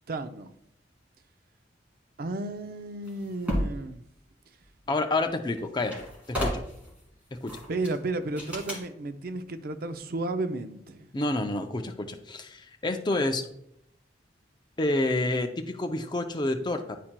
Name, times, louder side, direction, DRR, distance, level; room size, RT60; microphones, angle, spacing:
voice 1, 0.1-0.5 2.2-4.0 7.7-11.1, right 2 dB, 55° right, 0.4 m, -33 dB
sound 1, 3.1-3.8 5.2-5.3 5.6-6.9 7.5-8.0 8.4-8.8, equal, 10° right, 1.9 m, -32 dB
voice 2, 4.9-6.6 7.3-7.6 11.1-13.5 14.8-17.0, left 2 dB, 25° left, 0.5 m, -29 dB
9.9 x 4.3 x 2.2 m
head